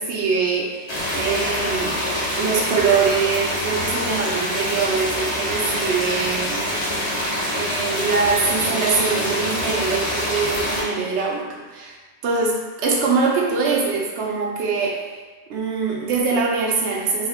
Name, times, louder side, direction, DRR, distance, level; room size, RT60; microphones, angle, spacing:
voice 1, 0.0-2.0 2.3-6.7 7.5-12.0 12.2-15.2 15.5-17.3, right 4 dB, 85° right, -1 dB, 0.9 m, -23 dB
sound 1, 0.9-10.8, equal, 70° left, 1.1 m, -25 dB
3.2 x 2.1 x 3.5 m, 1.3 s
omnidirectional pair, 1.1 m